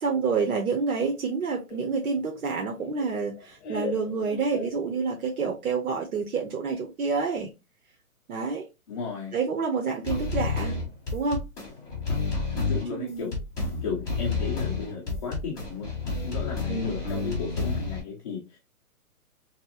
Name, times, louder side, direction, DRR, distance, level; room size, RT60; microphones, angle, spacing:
voice 1, 0.0-7.5 8.3-8.7 9.3-10.8 11.1-11.4 12.7-13.3 16.7-16.9, right 5 dB, 70° right, 1.1 m, -28 dB
Laughter, 1.7-5.4, left 4 dB, 45° left, 1.0 m, -40 dB
voice 2, 8.9-9.4 12.5-13.4 13.8-16.0 16.2-18.6, left 5 dB, 25° left, 0.8 m, -35 dB
sound 1, 10.0-18.0, left 4 dB, 5° left, 1.1 m, -30 dB
4.0 x 3.2 x 2.9 m
hypercardioid pair, 165°, 45 cm